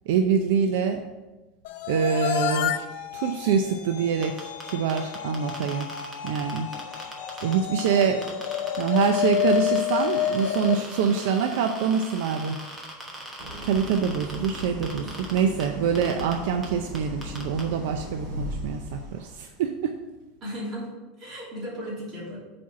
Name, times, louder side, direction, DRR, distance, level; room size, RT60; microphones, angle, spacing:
voice 1, 0.1-1.0 1.9-2.8 3.1-5.9 6.2-6.7 7.4-8.3 8.8-12.6 13.1-13.3 13.6-20.0, right 7 dB, 65° right, 5 dB, 0.5 m, -25 dB
sound 1, 1.6-11.8, left 10 dB, 65° left, 0.6 m, -30 dB
sound 2, 4.2-7.5 7.8-15.6 15.9-16.3 16.6-16.7 16.9-17.6, right 1 dB, 10° right, 1.1 m, -40 dB
voice 2, 7.8-8.3 20.4-22.4, equal, 25° right, -6 dB, 2.8 m, -36 dB
Idling, 13.4-19.5, left 1 dB, 40° right, 2.4 m, -37 dB
7.3 x 4.4 x 5.9 m, 1.1 s
supercardioid pair, 180°, 0 cm